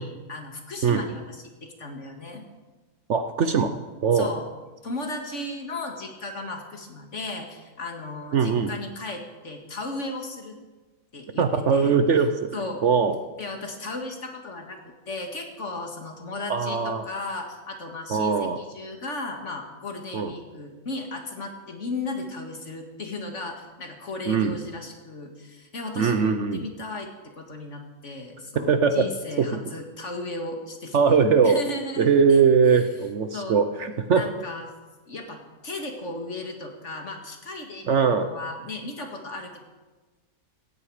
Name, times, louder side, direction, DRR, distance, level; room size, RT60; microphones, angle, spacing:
voice 1, 0.0-2.5 4.1-4.5 4.8-10.6 11.1-12.0 12.5-12.8 13.4-32.4 33.3-33.6 34.1-34.7 35.1-39.6, left 2 dB, 50° left, 3 dB, 2.3 m, -36 dB
voice 2, 3.1-3.7 4.0-4.3 8.3-8.7 11.4-12.5 12.8-13.2 16.5-17.1 18.1-18.6 20.1-20.3 24.3-24.6 26.0-26.7 28.7-29.1 29.4-29.6 30.9-31.6 32.0-34.2 37.9-38.3, right 6 dB, 55° right, 9 dB, 1.0 m, -21 dB
17.0 x 15.0 x 4.9 m, 1.2 s
omnidirectional pair, 1.6 m